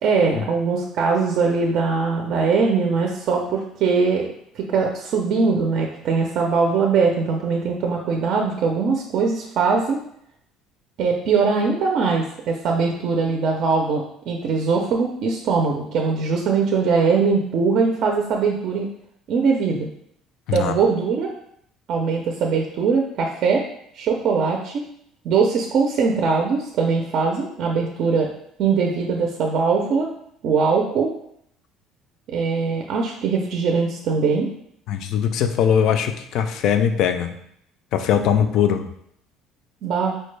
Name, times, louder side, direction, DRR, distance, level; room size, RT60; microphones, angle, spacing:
voice 1, 0.0-10.0 11.0-18.9 19.3-19.9 20.5-21.3 21.9-23.7 23.9-24.9 25.2-28.3 28.6-30.1 30.4-31.1 32.3-34.5 39.8-40.1, right 5 dB, 55° right, 1 dB, 0.4 m, -21 dB
voice 2, 34.9-37.4 37.9-38.9, left 8 dB, 60° left, 8 dB, 0.3 m, -21 dB
4.3 x 2.2 x 3.2 m, 0.72 s
cardioid pair, 135°, 0 cm